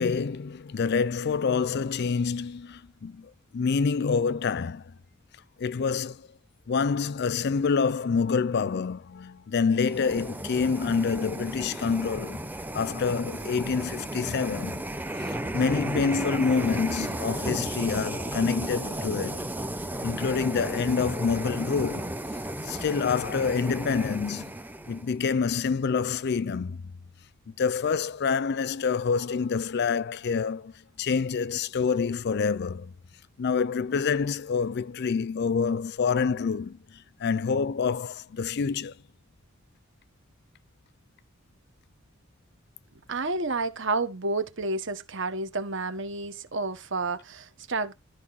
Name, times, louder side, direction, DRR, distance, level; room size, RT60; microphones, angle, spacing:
voice 1, 0.0-4.8 5.6-6.3 6.7-12.4 12.7-14.8 15.2-19.4 20.0-22.1 22.6-24.5 24.9-26.9 27.6-30.7 31.0-32.9 33.4-38.9, left 5 dB, 55° left, 0.4 m, -27 dB
sound 1, 9.7-25.1, right 1 dB, 10° right, 0.7 m, -34 dB
voice 2, 43.1-47.9, right 3 dB, 65° right, 1.3 m, -30 dB
12.5 x 4.5 x 4.1 m
head